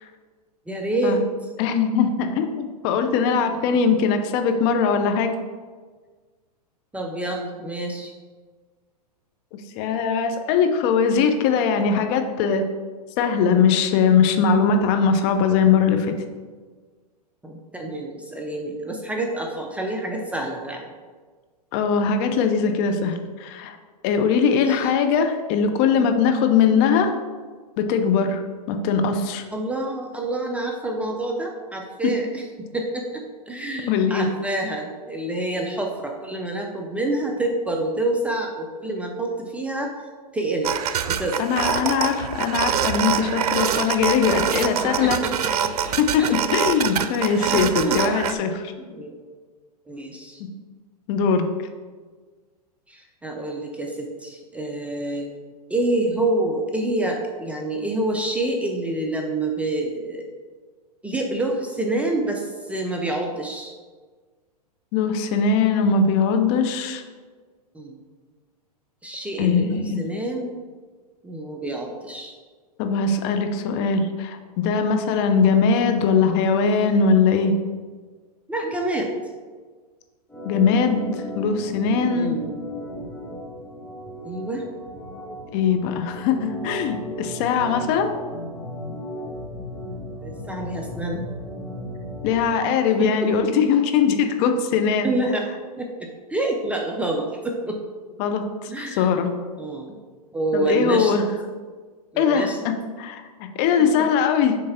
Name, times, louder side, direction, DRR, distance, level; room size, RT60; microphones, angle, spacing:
voice 1, 0.7-1.2 3.7-3.8 6.9-8.1 17.4-20.9 24.5-24.9 29.5-39.9 40.3-40.7 41.1-41.4 44.8-45.7 46.2-46.6 47.2-48.1 48.8-49.1 49.9-50.4 52.9-55.3 55.7-60.3 61.0-63.7 67.7-68.0 69.0-70.5 71.2-72.4 78.5-79.1 82.1-82.5 84.2-84.7 90.2-91.3 93.0-93.3 93.6-93.7 95.0-95.5 95.8-97.8 98.7-99.1 99.6-100.0 100.3-101.1 102.1-102.6 103.6-103.9, right 2 dB, 5° right, 1 dB, 0.5 m, -27 dB
voice 2, 1.6-5.3 9.8-12.6 13.2-16.2 21.7-23.8 24.0-27.1 27.8-28.4 28.7-29.4 32.0-32.1 33.9-34.3 41.4-45.2 46.0-48.7 51.1-51.5 64.9-67.0 69.4-70.0 72.8-77.5 80.4-81.0 81.3-82.4 85.5-88.1 92.2-95.1 98.2-99.3 100.5-101.2 102.2-104.6, left 6 dB, 40° left, 6 dB, 0.6 m, -21 dB
sound 1, 40.6-48.3, right 8 dB, 70° right, 0.4 m, -25 dB
Organ, 80.3-92.5, equal, 10° left, 1.0 m, -35 dB
6.6 x 3.3 x 4.3 m, 1.5 s
hypercardioid pair, 115°, 21 cm